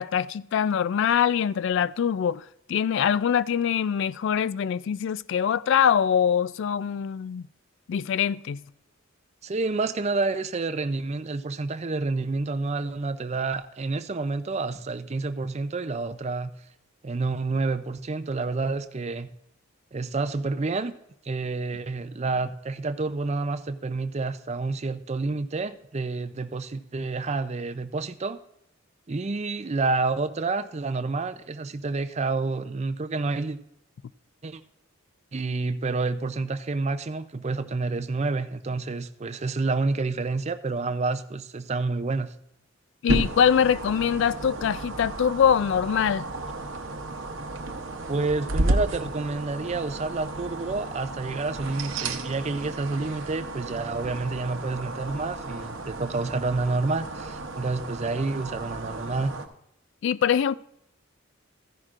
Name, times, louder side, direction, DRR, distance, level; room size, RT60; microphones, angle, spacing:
voice 1, 0.0-7.4 7.9-8.6 43.0-46.3 60.0-60.6, left 8 dB, 60° left, 0.3 m, -23 dB
voice 2, 9.4-16.5 17.0-19.3 19.9-20.9 21.2-28.4 29.1-33.6 34.4-34.6 35.3-42.3 48.1-59.3, right 3 dB, 30° right, 0.5 m, -29 dB
sound 1, 43.1-59.5, right 2 dB, 65° right, 0.9 m, -33 dB
14.0 x 10.5 x 2.5 m
head